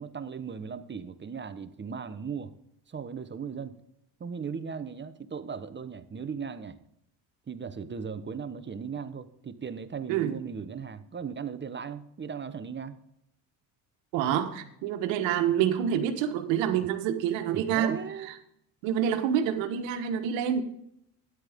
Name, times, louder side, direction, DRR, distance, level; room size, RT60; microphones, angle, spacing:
voice 1, 0.0-2.5 2.9-3.8 4.2-6.8 7.5-13.0 16.8-16.9 17.5-18.3, right 6 dB, 25° right, 1.0 m, -37 dB
voice 2, 14.1-18.0 18.8-20.6, right 9 dB, 80° right, 1.5 m, -27 dB
13.0 x 10.0 x 3.6 m
supercardioid pair, 85°, 45 cm